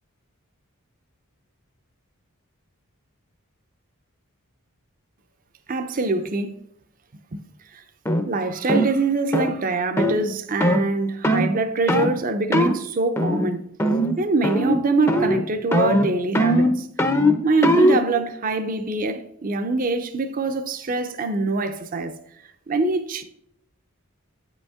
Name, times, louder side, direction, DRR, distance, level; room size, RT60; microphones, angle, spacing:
voice 1, 5.7-6.5 7.3-7.4 7.7-7.8 8.3-13.6 14.2-16.9 17.4-22.2 22.7-23.2, right 3 dB, 40° right, 0.5 m, -24 dB
sound 1, 8.1-8.2 8.7-8.9 9.3-9.5 10.0-10.2 10.6-10.8 11.2-11.5 11.9-12.1 12.5-12.8 13.2-13.5 13.8-14.2 14.4-14.8 15.1-15.4 15.7-18.0, equal, 10° left, 0.5 m, -20 dB
9.0 x 5.2 x 3.6 m
head